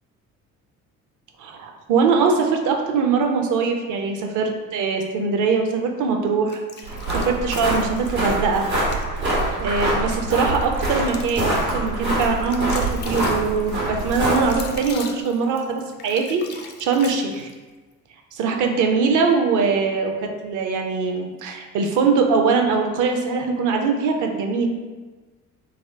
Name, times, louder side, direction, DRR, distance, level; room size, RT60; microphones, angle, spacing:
voice 1, 1.4-8.6 9.2-17.5 18.3-20.1 20.4-24.7, right 5 dB, 45° right, 3 dB, 0.6 m, -22 dB
sound 1, 6.5-8.1 8.8-9.1 9.6-17.6, left 5 dB, 25° left, 0.3 m, -39 dB
sound 2, 6.8-14.8, right 1 dB, 75° right, 1.2 m, -24 dB
3.5 x 2.0 x 3.3 m, 1.3 s
figure-of-eight pair, 45°, 43 cm